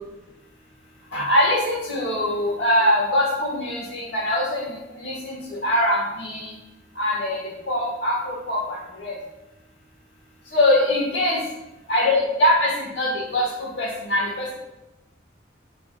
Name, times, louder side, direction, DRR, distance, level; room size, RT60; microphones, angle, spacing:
voice 1, 1.1-6.5 7.0-7.4 7.7-9.1 10.5-11.4 11.9-14.5, left 1 dB, 65° left, -3 dB, 1.3 m, -23 dB
6.7 x 3.4 x 2.2 m, 0.99 s
head